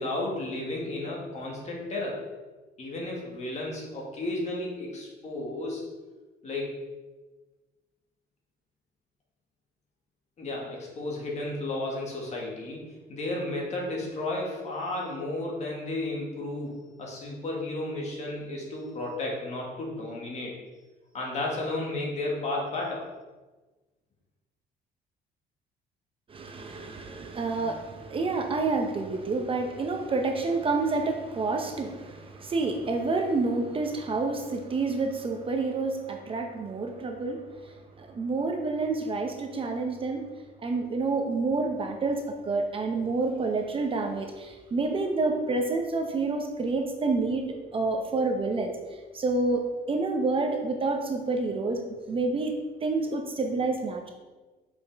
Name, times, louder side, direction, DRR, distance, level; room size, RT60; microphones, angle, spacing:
voice 1, 0.0-2.2 2.8-5.8 6.4-6.7 10.4-20.6 21.1-23.1, left 2 dB, 40° left, -2 dB, 1.9 m, -33 dB
voice 2, 26.3-40.3 40.6-48.7 49.1-49.6 49.9-51.8 52.1-52.5 52.8-54.1, right 3 dB, 30° right, 3 dB, 0.8 m, -28 dB
6.4 x 5.3 x 3.5 m, 1.2 s
cardioid pair, 110°, 17 cm